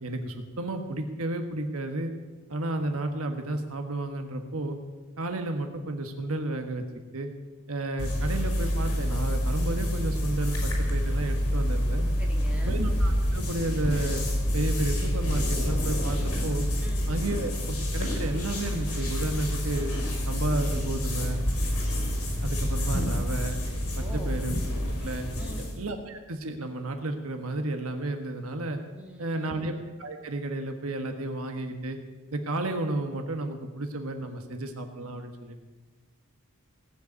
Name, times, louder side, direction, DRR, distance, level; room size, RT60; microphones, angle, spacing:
voice 1, 0.0-2.1 2.5-4.8 5.2-6.8 7.1-7.3 7.7-12.1 12.6-14.2 14.5-16.6 17.1-19.9 20.3-21.4 22.4-23.6 24.0-24.6 25.0-25.2 25.6-28.8 29.2-29.7 30.0-32.0 32.3-35.8, right 2 dB, 65° right, 5 dB, 1.4 m, -32 dB
sound 1, 8.0-25.8, equal, 70° left, 5.5 m, -28 dB
voice 2, 12.2-12.7 16.8-17.1 24.0-24.4 25.4-25.7 28.9-29.6, equal, 5° right, -1 dB, 2.9 m, -44 dB
18.0 x 8.0 x 9.6 m, 1.3 s
head